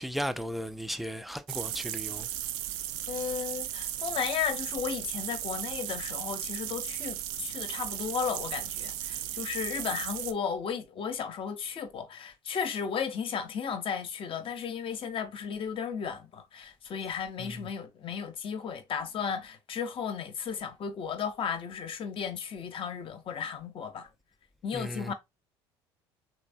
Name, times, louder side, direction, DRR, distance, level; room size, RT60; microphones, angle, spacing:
voice 1, 0.0-2.3 17.4-17.7 24.7-25.1, equal, ahead, 0.4 m, -35 dB
sound 1, 1.5-10.3, right 12 dB, 70° right, 0.4 m, -36 dB
voice 2, 3.1-24.1 24.6-25.1, left 7 dB, 40° left, 0.7 m, -34 dB
3.3 x 3.0 x 2.5 m
hypercardioid pair, 65°, 13 cm